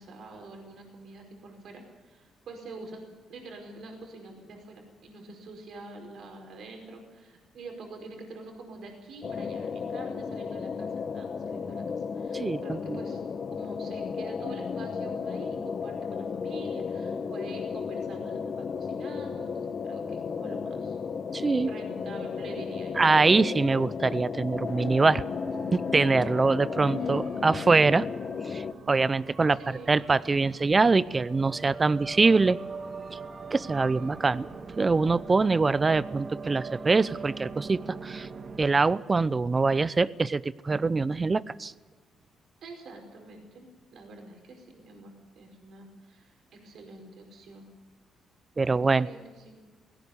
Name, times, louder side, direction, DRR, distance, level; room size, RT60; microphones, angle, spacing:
voice 1, 0.0-3.0 3.3-13.2 13.5-21.0 21.6-23.0 27.0-27.1 29.5-30.0 42.6-47.7 48.6-49.6, right 3 dB, 65° right, 2 dB, 5.0 m, -46 dB
sound 1, 9.2-28.7, left 6 dB, 45° left, 1.1 m, -34 dB
voice 2, 12.3-13.0 21.3-21.7 23.0-25.2 25.7-28.1 28.4-32.6 33.1-33.2 33.5-34.5 34.8-38.3 38.6-41.7 48.6-49.1, right 3 dB, 30° right, 19 dB, 0.6 m, -24 dB
sound 2, 24.7-38.6, right 4 dB, 45° right, 1.9 m, -42 dB
18.0 x 17.0 x 9.7 m, 1.3 s
cardioid pair, 90°, 0 cm